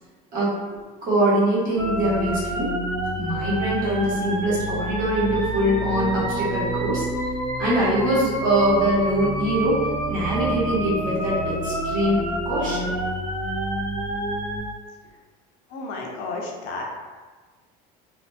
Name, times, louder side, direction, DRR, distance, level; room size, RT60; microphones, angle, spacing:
voice 1, 1.0-2.7 3.2-7.1 7.6-12.9, right 1 dB, 45° right, -8 dB, 1.1 m, -23 dB
sound 1, 1.8-14.6, right 1 dB, 25° right, 0.5 m, -28 dB
voice 2, 15.7-16.8, left 3 dB, 55° left, 0 dB, 0.5 m, -32 dB
2.8 x 2.5 x 2.2 m, 1.3 s
cardioid pair, 170°, 19 cm